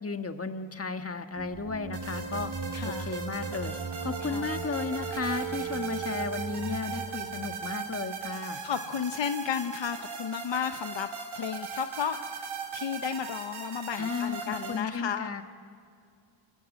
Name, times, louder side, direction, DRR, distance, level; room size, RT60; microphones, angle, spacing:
voice 1, 0.0-2.5 2.8-3.7 4.0-8.6 14.0-15.4, left 4 dB, 30° left, 7 dB, 1.5 m, -34 dB
sound 1, 1.4-7.6, right 3 dB, 35° right, 1.8 m, -40 dB
sound 2, 1.9-14.8, right 5 dB, 80° right, 3.8 m, -39 dB
voice 2, 2.7-3.1 4.2-4.5 8.6-11.1 11.3-15.3, left 8 dB, 65° left, 9 dB, 0.9 m, -33 dB
Wind instrument woodwind instrument, 3.4-7.9, right 7 dB, 5° left, 6.0 m, -40 dB
28.0 x 17.5 x 9.5 m, 2.4 s
cardioid pair, 85°, 47 cm